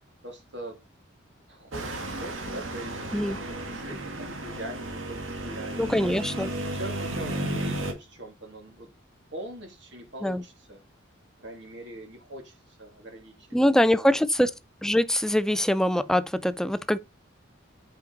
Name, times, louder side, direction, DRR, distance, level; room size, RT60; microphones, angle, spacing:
voice 1, 0.2-0.8 1.5-5.8 6.2-6.3 6.7-8.9 9.3-10.8 11.4-13.5 14.0-14.2, right 1 dB, 60° right, 2.8 m, -42 dB
sound 1, 1.7-7.9, right 1 dB, 80° right, 1.9 m, -33 dB
voice 2, 5.8-6.5 10.2-10.4 13.5-14.5 14.8-17.0, equal, 5° left, 0.4 m, -23 dB
8.3 x 5.2 x 4.0 m
head